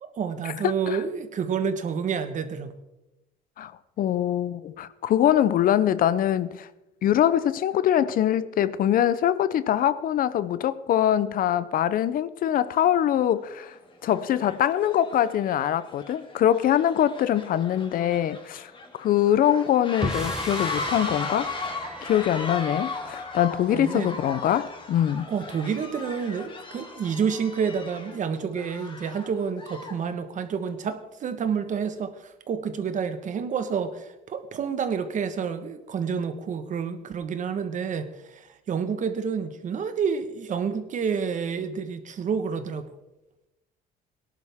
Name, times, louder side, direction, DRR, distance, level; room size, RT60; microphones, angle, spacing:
voice 1, 0.0-2.7 23.7-24.2 25.3-42.9, right 6 dB, 50° right, 9 dB, 1.3 m, -29 dB
voice 2, 0.6-1.0 3.6-3.7 4.0-6.7 7.0-13.7 14.0-18.7 19.0-21.5 22.0-25.2, left 10 dB, 55° left, 16 dB, 0.6 m, -23 dB
sound 1, 13.5-13.8 14.1-30.1, left 3 dB, 30° left, 2.3 m, -37 dB
sound 2, 20.0-26.4, right 1 dB, 5° right, 1.2 m, -39 dB
18.5 x 11.0 x 3.6 m, 0.97 s
cardioid pair, 110°, 17 cm